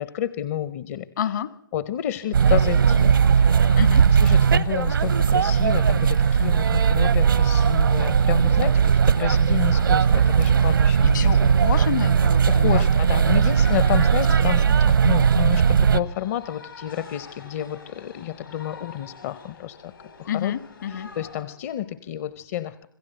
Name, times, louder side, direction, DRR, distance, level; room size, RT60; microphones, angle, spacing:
voice 1, 0.0-1.1 1.7-11.7 12.2-19.9 20.2-20.5 20.9-22.9, left 12 dB, 45° left, 15 dB, 0.8 m, -30 dB
voice 2, 1.2-1.5 3.8-4.1 10.7-10.8 11.1-12.8 13.1-13.3 14.4-14.8 20.3-21.1, left 9 dB, 60° left, 14 dB, 1.7 m, -29 dB
sound 1, 2.3-16.0, right 7 dB, 75° right, 0.9 m, -18 dB
sound 2, 2.9-21.5, left 4 dB, 80° left, 5.3 m, -46 dB
26.0 x 16.0 x 7.9 m, 0.71 s
figure-of-eight pair, 120°, 11 cm